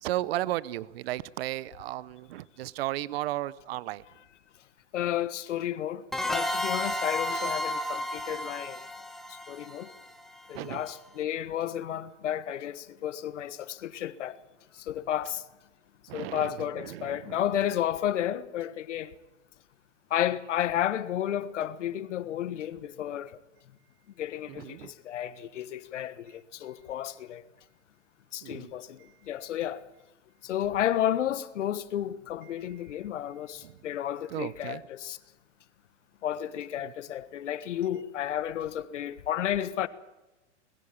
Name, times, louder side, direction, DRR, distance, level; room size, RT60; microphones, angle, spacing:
voice 1, 0.0-4.0 10.5-10.9 16.1-17.4 24.5-24.9 28.4-28.7 29.0-29.1 32.5-32.6 33.6-33.8 34.3-34.8 36.8-36.9, right 15 dB, 55° right, 0.8 m, -35 dB
voice 2, 4.9-8.8 9.3-9.9 10.5-14.4 14.7-15.4 16.1-19.1 20.1-23.4 24.2-27.4 28.3-29.8 30.4-35.2 36.2-39.9, left 11 dB, 80° left, 1.5 m, -32 dB
sound 1, 6.1-10.6, left 1 dB, ahead, 1.1 m, -32 dB
21.5 x 15.0 x 8.7 m
supercardioid pair, 155°, 36 cm